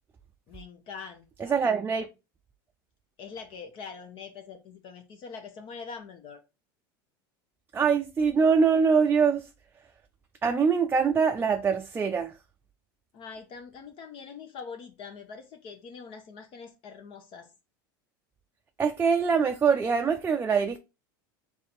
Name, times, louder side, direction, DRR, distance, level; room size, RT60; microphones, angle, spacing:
voice 1, 0.5-1.6 3.2-6.4 13.1-17.5, left 5 dB, 50° left, 0.9 m, -43 dB
voice 2, 1.4-2.1 7.7-9.5 10.4-12.3 18.8-20.8, right 6 dB, 20° right, 0.5 m, -23 dB
3.6 x 3.3 x 4.4 m
supercardioid pair, 105°, 11 cm